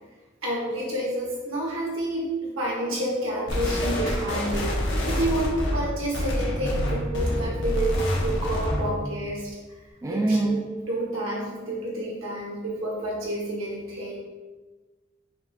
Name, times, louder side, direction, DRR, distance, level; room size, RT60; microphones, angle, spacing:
voice 1, 0.4-9.5 10.1-14.2, right 1 dB, 80° right, -4 dB, 1.2 m, -29 dB
sound 1, 3.5-8.9, equal, 65° left, 0.8 m, -27 dB
voice 2, 6.6-6.9 8.7-8.9 10.0-10.6, right 2 dB, 15° right, 0 dB, 0.3 m, -26 dB
5.1 x 2.4 x 2.7 m, 1.3 s
head